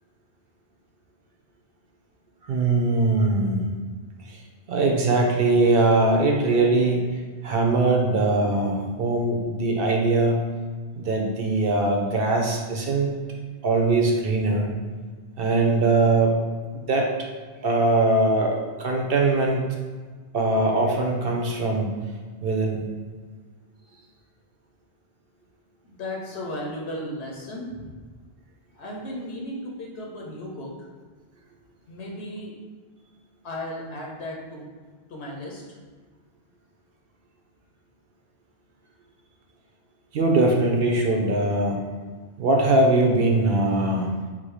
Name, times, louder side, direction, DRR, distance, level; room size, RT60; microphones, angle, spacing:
voice 1, 2.5-3.7 4.3-4.4 4.7-7.1 7.4-10.5 10.9-13.1 13.6-14.7 15.4-16.4 16.7-17.1 17.6-19.7 20.3-21.9 22.4-22.8 40.1-41.8 42.4-44.1, right 2 dB, 65° right, 1 dB, 0.7 m, -21 dB
voice 2, 25.8-27.9 28.7-30.7 31.9-32.5 33.4-34.7 35.1-35.6, left 1 dB, 80° left, -1 dB, 1.0 m, -35 dB
3.8 x 2.6 x 4.7 m, 1.5 s
omnidirectional pair, 1.1 m